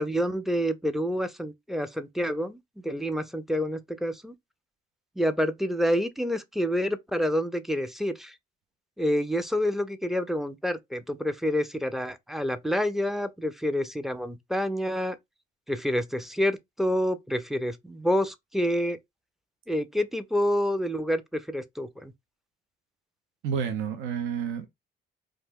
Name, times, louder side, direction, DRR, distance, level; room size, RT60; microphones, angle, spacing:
voice 1, 0.0-4.3 5.2-8.3 9.0-15.2 15.7-19.0 19.7-22.1, equal, ahead, 0.4 m, -28 dB
voice 2, 23.4-24.7, right 7 dB, 90° right, 0.5 m, -30 dB
2.5 x 2.2 x 3.3 m
cardioid pair, 90°, 20 cm